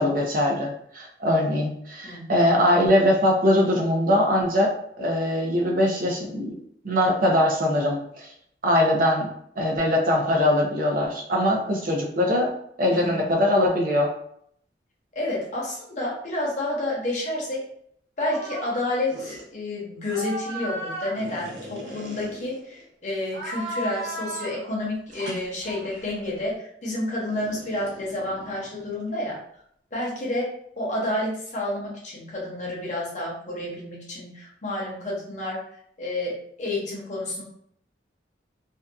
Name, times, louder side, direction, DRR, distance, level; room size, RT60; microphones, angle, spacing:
voice 1, 0.0-6.5 6.8-8.3 8.6-12.5 12.8-14.1, left 1 dB, 50° right, 0 dB, 0.5 m, -22 dB
voice 2, 1.2-1.6 2.0-2.3 12.9-13.2 15.1-17.6 18.2-29.4 29.9-35.6 36.0-37.4, left 1 dB, 40° left, -5 dB, 0.8 m, -30 dB
sound 1, 18.2-18.8 19.1-19.4 20.1-22.8 23.3-24.6 25.1-26.2 27.3-29.1, right 1 dB, 90° right, 0.7 m, -36 dB
2.6 x 2.3 x 2.3 m, 0.68 s
head